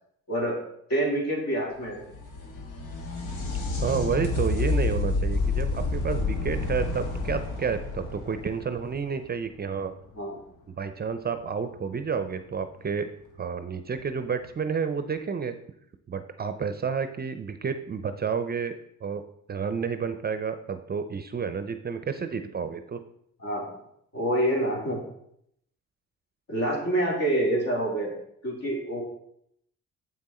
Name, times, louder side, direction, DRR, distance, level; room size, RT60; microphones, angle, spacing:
voice 1, 0.3-0.6 0.9-2.0 10.1-10.4 23.4-23.7 24.1-25.0 26.5-28.1 28.4-29.0, right 1 dB, 55° left, -2 dB, 2.9 m, -26 dB
sound 1, 1.9-9.5 12.8-12.9 14.0-14.1, left 3 dB, 80° left, 1.4 m, -29 dB
voice 2, 3.8-9.9 10.7-13.1 13.4-15.6 16.1-19.2 19.5-23.0, right 6 dB, 30° right, 10 dB, 0.5 m, -30 dB
7.3 x 6.1 x 4.2 m, 0.73 s
cardioid pair, 90°, 30 cm